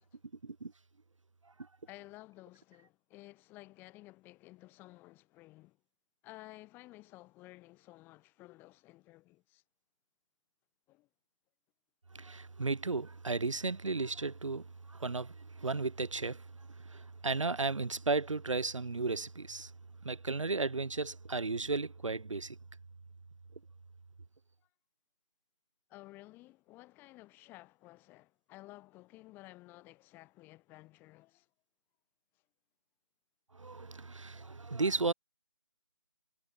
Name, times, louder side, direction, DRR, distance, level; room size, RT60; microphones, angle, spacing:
voice 1, 1.9-5.8 6.2-9.6 10.9-11.1 25.9-31.5, left 19 dB, 10° left, 7.7 m, -54 dB
voice 2, 12.1-14.6 14.9-16.4 16.9-19.7 20.0-22.6 33.6-35.1, right 3 dB, 60° right, 2.4 m, -34 dB
figure-of-eight pair, 155°, 18 cm